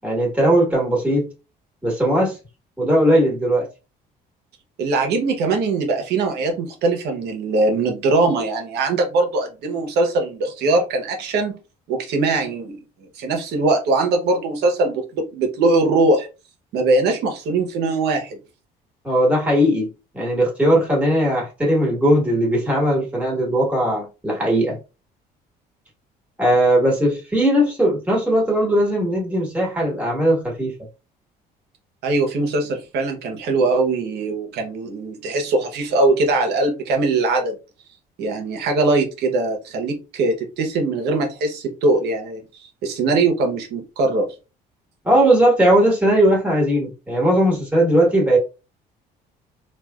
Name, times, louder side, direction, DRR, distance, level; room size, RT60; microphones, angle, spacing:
voice 1, 0.0-1.3 1.8-2.4 2.8-3.7 19.0-19.9 20.1-24.8 26.4-30.7 45.0-48.4, right 1 dB, 10° right, 1.5 m, -18 dB
voice 2, 4.8-11.6 11.9-12.8 13.2-16.3 16.7-18.4 32.0-37.6 38.2-42.4 42.8-44.3, right 3 dB, 75° right, 1.0 m, -21 dB
3.2 x 2.5 x 2.3 m
cardioid pair, 110°, 17 cm